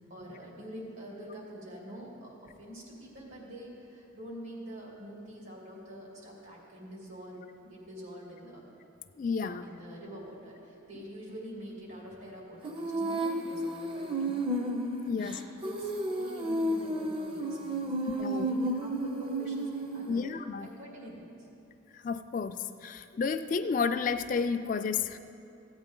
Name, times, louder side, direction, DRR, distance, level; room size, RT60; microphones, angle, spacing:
voice 1, 0.0-8.7 9.4-14.7 15.1-20.2 20.6-21.5, equal, 75° right, -3 dB, 2.7 m, -45 dB
voice 2, 9.2-9.6 15.1-15.4 18.2-18.5 20.1-20.7 21.9-25.2, left 5 dB, 40° left, 9 dB, 0.3 m, -31 dB
Female singing, 12.6-20.3, right 1 dB, 25° right, 0.6 m, -32 dB
15.0 x 8.8 x 3.7 m, 2.7 s
head